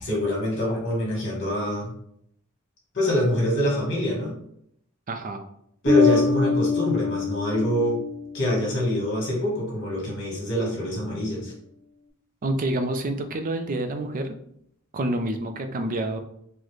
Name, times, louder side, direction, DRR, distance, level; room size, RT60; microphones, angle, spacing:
voice 1, 0.0-1.9 2.9-4.3 5.8-8.0 8.3-11.5, left 1 dB, 55° left, -2 dB, 1.3 m, -25 dB
voice 2, 5.1-5.4 12.4-14.3 14.9-16.2, right 1 dB, 40° right, 7 dB, 0.4 m, -28 dB
Bass guitar, 5.9-8.9, left 4 dB, 25° left, 1.1 m, -24 dB
3.8 x 2.1 x 3.1 m, 0.72 s
head